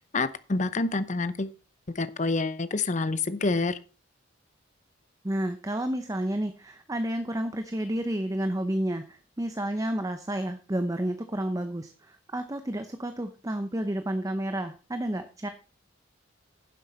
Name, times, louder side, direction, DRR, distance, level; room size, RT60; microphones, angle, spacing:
voice 1, 0.1-1.5 1.9-3.8, left 3 dB, 40° left, 14 dB, 0.7 m, -27 dB
voice 2, 5.2-15.5, right 1 dB, 15° right, 8 dB, 0.7 m, -31 dB
10.5 x 7.6 x 4.3 m, 0.35 s
head